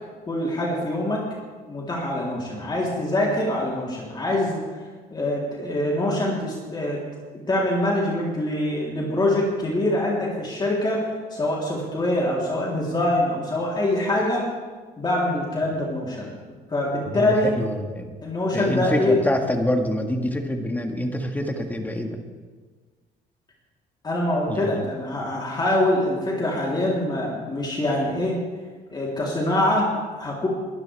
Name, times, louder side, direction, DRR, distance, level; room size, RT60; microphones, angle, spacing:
voice 1, 0.3-1.2 1.7-4.6 5.1-7.0 7.5-11.1 11.3-14.5 15.0-16.3 16.7-17.5 18.2-19.2 24.0-28.4 28.9-30.5, left 1 dB, 25° left, -4 dB, 3.5 m, -24 dB
voice 2, 17.1-18.1 18.5-22.2 24.5-24.9, left 1 dB, 10° left, 4 dB, 1.8 m, -26 dB
23.0 x 12.0 x 3.5 m, 1.4 s
cardioid pair, 110°, 17 cm